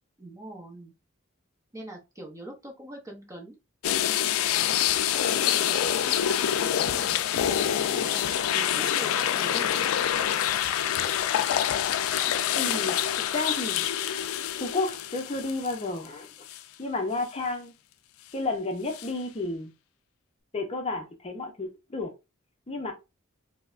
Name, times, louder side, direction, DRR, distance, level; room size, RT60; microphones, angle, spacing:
voice 1, 0.2-0.9 1.7-3.6 5.1-9.9, right 1 dB, 15° right, 0.7 m, -43 dB
sound 1, 3.8-16.1 16.5-16.6 18.9-19.1, left 10 dB, 80° left, 0.3 m, -26 dB
voice 2, 12.5-14.2 14.6-16.5 16.8-17.7 18.3-19.7 20.5-22.1 22.7-22.9, left 2 dB, 30° left, 0.6 m, -32 dB
4.5 x 2.1 x 2.4 m
head